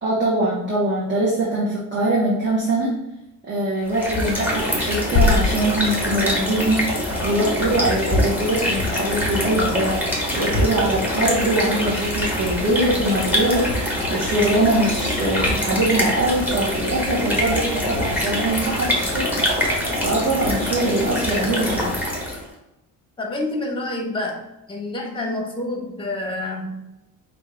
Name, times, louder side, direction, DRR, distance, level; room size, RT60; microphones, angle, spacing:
voice 1, 0.0-3.0 3.4-10.0 10.3-19.4 20.0-21.9, right 1 dB, 30° right, -7 dB, 1.4 m, -22 dB
sound 1, 3.8-22.5, left 1 dB, 5° right, 1.3 m, -24 dB
sound 2, 5.1-7.0, left 4 dB, 50° left, 0.6 m, -23 dB
voice 2, 23.2-26.8, left 2 dB, 15° left, 1 dB, 1.1 m, -28 dB
5.3 x 2.7 x 3.4 m, 0.91 s
cardioid pair, 120°, 35 cm